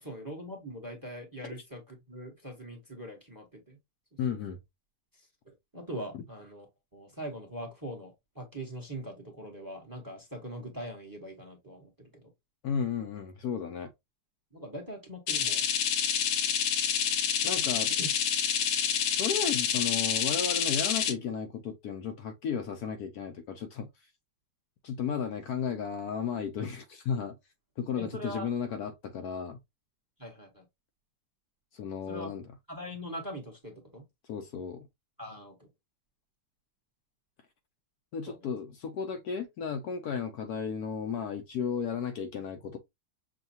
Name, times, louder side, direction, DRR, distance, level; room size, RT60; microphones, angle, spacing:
voice 1, 0.0-3.8 5.5-6.7 6.9-12.3 14.5-15.6 18.0-18.1 28.0-28.5 30.2-30.6 32.1-32.3 32.7-34.0 35.2-35.7 38.3-38.5, equal, 15° right, 1.0 m, -42 dB
voice 2, 4.2-4.6 6.1-6.2 12.6-13.9 17.4-17.9 19.2-23.9 24.8-27.4 27.8-29.6 31.7-32.4 34.3-34.9 38.1-42.8, left 7 dB, 70° left, 1.0 m, -34 dB
sound 1, 15.3-21.1, left 8 dB, 90° left, 1.6 m, -28 dB
6.3 x 2.3 x 2.7 m
omnidirectional pair, 2.0 m